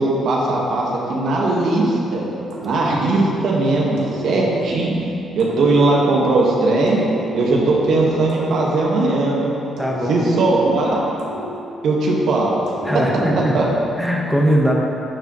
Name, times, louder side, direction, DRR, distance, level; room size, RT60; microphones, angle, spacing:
voice 1, 0.0-2.2 2.6-4.9 5.4-7.0 7.3-9.5 10.1-11.0 11.8-12.6 13.5-13.6, right 2 dB, 70° right, -3 dB, 1.5 m, -18 dB
sound 1, 2.5-3.5 4.0-6.4 6.9-9.3 9.8-12.2 12.7-14.1, right 2 dB, 90° right, 1.4 m, -32 dB
voice 2, 9.8-10.2 12.8-13.6 14.0-14.7, equal, 5° left, -2 dB, 1.3 m, -20 dB
11.0 x 6.9 x 3.1 m, 2.8 s
cardioid pair, 90°, 0 cm